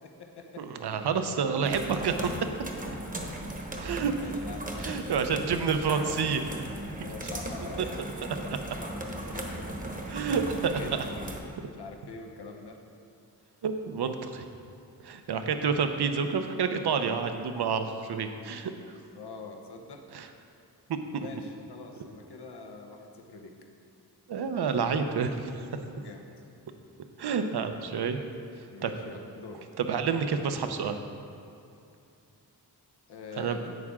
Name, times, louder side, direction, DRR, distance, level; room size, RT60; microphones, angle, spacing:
voice 1, 0.0-0.7 3.2-3.5 4.1-6.0 7.0-10.0 10.5-11.4 11.8-12.8 19.1-20.0 21.2-23.5 25.9-26.2 28.7-29.6 33.1-33.8, left 4 dB, 75° left, 3 dB, 1.0 m, -45 dB
voice 2, 0.6-2.3 3.7-4.1 4.8-6.4 10.1-10.8 13.6-14.4 15.0-18.7 20.1-20.3 21.1-21.3 24.3-25.7 27.2-28.2 28.8-28.9 29.8-31.0 33.4-33.6, right 6 dB, 75° right, 7 dB, 0.8 m, -29 dB
sound 1, 1.6-11.4, right 1 dB, 20° right, 1.0 m, -37 dB
11.0 x 8.4 x 3.7 m, 2.6 s
wide cardioid pair, 140°, 40 cm